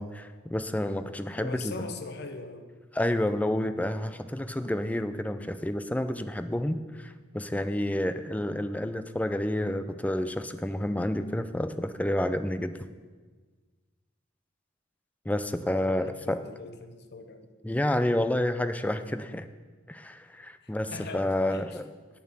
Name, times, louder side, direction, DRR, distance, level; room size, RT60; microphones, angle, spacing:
voice 1, 0.0-1.7 2.9-12.7 15.3-16.4 17.6-19.5 19.9-21.8, left 1 dB, 10° left, 11 dB, 0.4 m, -29 dB
voice 2, 1.4-2.7 15.5-17.5 20.6-21.8, left 3 dB, 60° left, 8 dB, 0.9 m, -42 dB
8.7 x 7.0 x 7.3 m, 1.4 s
head